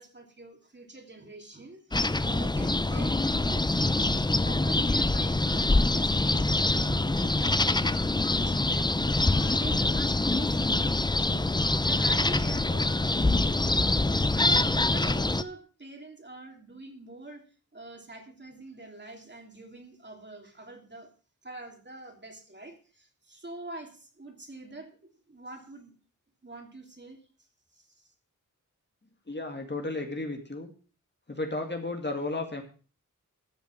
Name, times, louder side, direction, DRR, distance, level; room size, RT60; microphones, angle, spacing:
voice 1, 0.0-17.4 17.7-21.1 21.4-24.9 25.3-25.9 26.4-27.2 27.7-28.1, right 2 dB, 35° right, 3 dB, 3.2 m, -45 dB
sound 1, 1.9-15.4, left 2 dB, 15° left, 0.6 m, -25 dB
voice 2, 29.3-30.7 31.3-32.6, left 2 dB, 35° left, 4 dB, 2.1 m, -33 dB
13.5 x 7.1 x 6.0 m, 0.38 s
wide cardioid pair, 75°, 32 cm